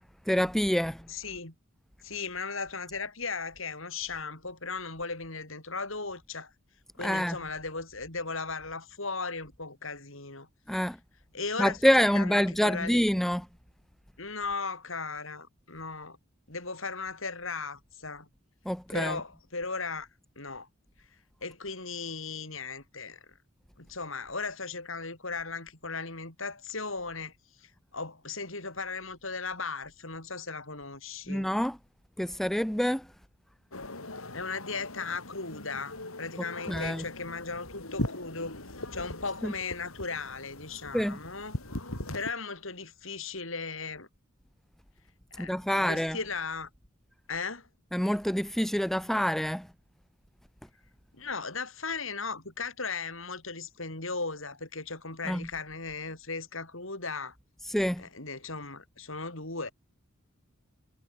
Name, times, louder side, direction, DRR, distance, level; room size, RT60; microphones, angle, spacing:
voice 1, 0.3-1.0 7.0-7.4 10.7-11.0 11.6-13.5 18.7-19.2 31.3-31.8 32.2-33.1 36.7-37.0 39.4-39.5 40.9-41.2 45.4-46.2 47.9-49.7 55.3-55.5 57.6-58.0, equal, ahead, 0.5 m, -27 dB
voice 2, 1.1-1.5 2.0-6.5 7.0-10.5 11.3-13.0 14.2-16.2 16.5-18.3 18.9-20.1 20.4-20.7 21.4-23.3 23.8-31.5 34.3-38.6 38.9-41.6 42.1-44.1 45.3-46.7 47.3-47.7 51.1-57.3 58.0-59.7, left 4 dB, 65° left, 7.3 m, -37 dB
sound 1, 33.7-42.3, left 1 dB, 85° left, 6.5 m, -40 dB
head